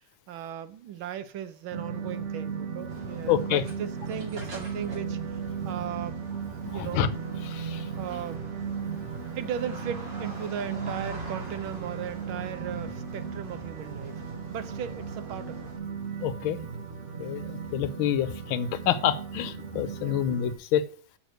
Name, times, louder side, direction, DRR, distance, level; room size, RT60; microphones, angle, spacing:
voice 1, 0.3-5.2 5.6-6.2 6.7-7.1 8.0-8.5 9.4-14.2 14.5-15.7 20.0-20.2, right 9 dB, 80° right, 1.6 m, -37 dB
sound 1, 1.7-20.5, right 6 dB, 45° right, 1.1 m, -36 dB
sound 2, 2.9-15.8, right 2 dB, 60° right, 3.0 m, -45 dB
voice 2, 3.3-3.6 6.7-7.1 7.5-7.8 16.2-16.6 17.2-20.8, left 10 dB, 80° left, 1.5 m, -27 dB
6.6 x 6.6 x 6.4 m
omnidirectional pair, 2.2 m